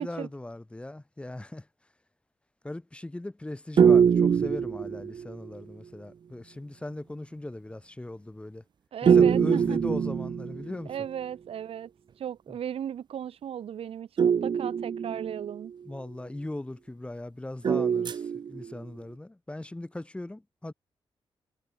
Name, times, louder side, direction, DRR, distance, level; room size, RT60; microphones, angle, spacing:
voice 1, 0.0-1.6 2.6-8.6 9.0-10.9 15.8-18.2 18.5-20.7, left 1 dB, 10° left, 3.0 m, -38 dB
sound 1, 3.8-5.5 9.1-10.9 14.2-15.7 17.6-18.8, right 7 dB, 50° right, 0.7 m, -23 dB
voice 2, 8.9-9.8 10.9-11.9 12.2-15.7, right 9 dB, 80° right, 1.8 m, -36 dB
wide cardioid pair, 140°, 10 cm